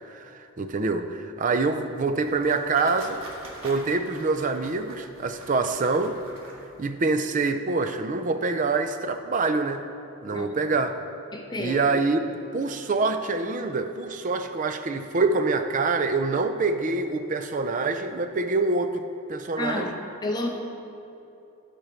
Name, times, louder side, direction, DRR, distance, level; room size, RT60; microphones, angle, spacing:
voice 1, 0.2-3.2 3.6-6.2 6.8-9.8 10.2-11.0 11.6-20.0, right 3 dB, 35° right, 8 dB, 0.4 m, -26 dB
sound 1, 2.0-6.9, right 1 dB, 70° right, 1.4 m, -45 dB
voice 2, 11.3-11.8 19.6-20.5, left 2 dB, 20° left, 0 dB, 0.8 m, -31 dB
9.3 x 4.5 x 6.2 m, 2.8 s
head